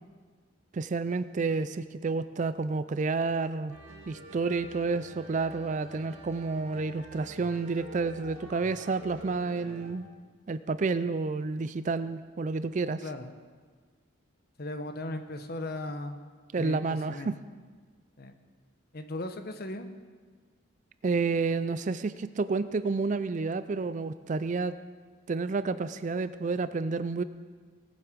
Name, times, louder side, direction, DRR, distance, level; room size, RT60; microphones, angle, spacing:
voice 1, 0.7-3.7 4.1-10.1 10.5-13.0 16.5-17.3 21.0-24.7 25.3-27.2, right 4 dB, 35° right, 13 dB, 0.4 m, -30 dB
sound 1, 3.7-9.9, right 1 dB, 80° right, 1.9 m, -47 dB
voice 2, 13.0-13.3 14.6-16.2 16.6-17.3 18.2-18.3 18.9-19.9, left 2 dB, 50° left, 7 dB, 0.9 m, -37 dB
19.0 x 7.5 x 5.1 m, 1.5 s
head